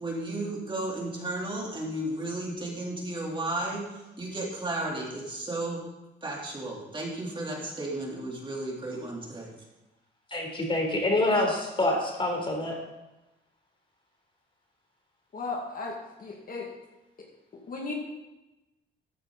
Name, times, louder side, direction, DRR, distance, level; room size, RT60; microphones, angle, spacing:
voice 1, 0.0-5.8 6.2-9.5, right 2 dB, 25° right, -3 dB, 3.5 m, -34 dB
voice 2, 10.3-12.8, left 2 dB, 25° left, 1 dB, 3.9 m, -26 dB
voice 3, 15.3-16.7 17.7-17.9, left 3 dB, 45° left, -1 dB, 2.2 m, -35 dB
14.0 x 8.9 x 4.1 m, 1.0 s
cardioid pair, 90°, 20 cm